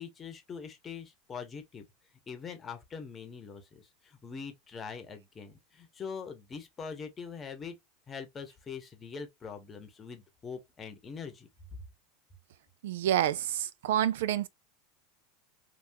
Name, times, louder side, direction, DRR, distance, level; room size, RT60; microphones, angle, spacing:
voice 1, 0.0-1.9 2.3-7.8 8.1-11.5, left 6 dB, 20° left, 0.8 m, -43 dB
voice 2, 12.8-14.5, right 11 dB, 85° right, 0.3 m, -28 dB
3.5 x 2.3 x 2.6 m
supercardioid pair, 140°, 0 cm